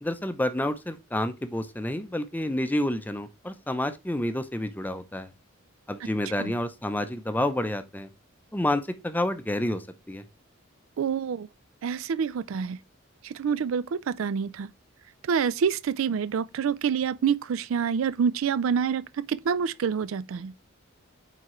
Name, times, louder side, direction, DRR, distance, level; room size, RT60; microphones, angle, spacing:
voice 1, 0.0-5.3 5.9-8.1 8.5-10.2, left 1 dB, 10° left, 0.6 m, -29 dB
voice 2, 11.0-11.5 11.8-12.8 13.2-14.7 15.2-20.5, right 7 dB, 75° right, 0.4 m, -27 dB
9.0 x 3.6 x 3.1 m
head